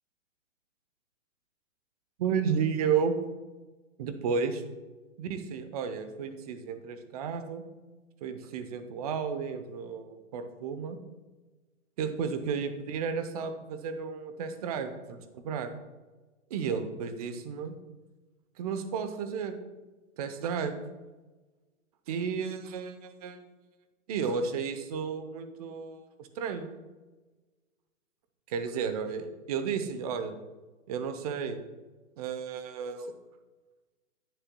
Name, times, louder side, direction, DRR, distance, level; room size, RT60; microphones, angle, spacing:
voice 1, 2.2-3.1 4.0-4.6 5.2-7.6 8.2-11.0 12.0-15.7 16.5-17.7 18.6-19.6 20.2-20.8 22.1-23.4 24.1-26.7 28.5-30.4 30.9-31.6 32.2-33.1, right 6 dB, 30° right, 9 dB, 0.7 m, -32 dB
10.0 x 8.7 x 2.2 m, 1.2 s
hypercardioid pair, 145°, 40 cm